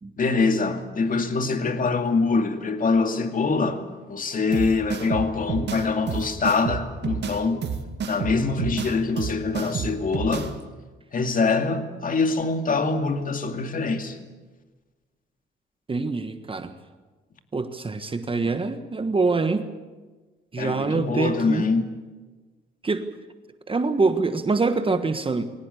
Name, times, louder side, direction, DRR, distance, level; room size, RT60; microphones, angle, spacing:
voice 1, 0.2-7.7 8.0-10.5 11.1-14.2 20.6-21.9, left 4 dB, 45° left, 2.4 m, -24 dB
sound 1, 4.5-10.5, right 7 dB, 60° right, 2.0 m, -30 dB
voice 2, 15.9-16.7 17.5-19.7 20.5-21.6 22.8-23.1 23.7-25.4, right 3 dB, 25° right, 1.4 m, -25 dB
21.5 x 18.0 x 8.4 m
cardioid pair, 90°, 20 cm